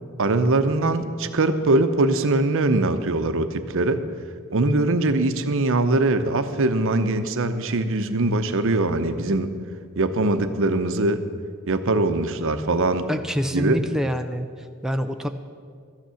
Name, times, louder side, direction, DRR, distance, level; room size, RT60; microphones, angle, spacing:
voice 1, 0.2-4.0 4.5-9.5 10.0-11.2 11.7-13.0 13.5-13.8, right 2 dB, 65° right, 9 dB, 0.8 m, -22 dB
voice 2, 13.1-15.3, equal, ahead, 5 dB, 0.4 m, -26 dB
13.0 x 9.2 x 6.9 m, 2.1 s
head